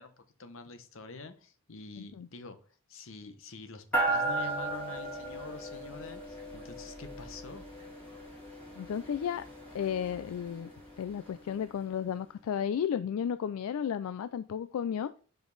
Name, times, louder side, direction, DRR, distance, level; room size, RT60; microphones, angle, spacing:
voice 1, 0.0-2.6 2.9-7.6, left 3 dB, 65° left, 0.9 m, -46 dB
voice 2, 2.0-2.3 8.7-9.5 9.7-10.7 11.0-15.1, left 8 dB, 80° left, 0.3 m, -33 dB
sound 1, 3.9-11.6, right 2 dB, 5° left, 2.5 m, -36 dB
5.1 x 5.1 x 3.9 m
head